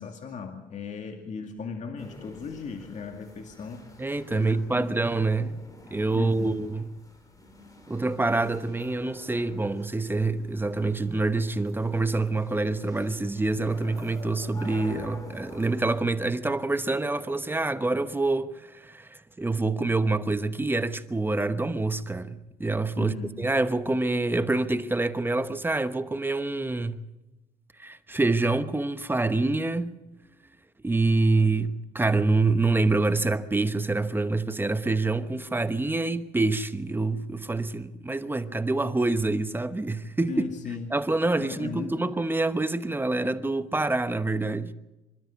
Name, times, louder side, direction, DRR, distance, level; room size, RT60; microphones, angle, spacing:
voice 1, 0.0-3.9 4.3-5.1 6.1-6.6 23.0-23.4 40.3-40.9 41.4-42.0, left 5 dB, 45° left, 2.3 m, -37 dB
sound 1, 2.0-16.0, left 2 dB, 20° left, 4.3 m, -48 dB
voice 2, 4.0-5.6 5.9-6.9 7.9-27.0 27.8-30.0 30.8-40.4 40.9-44.7, right 3 dB, 10° right, 1.0 m, -26 dB
27.0 x 13.0 x 8.2 m
cardioid pair, 110°, 17 cm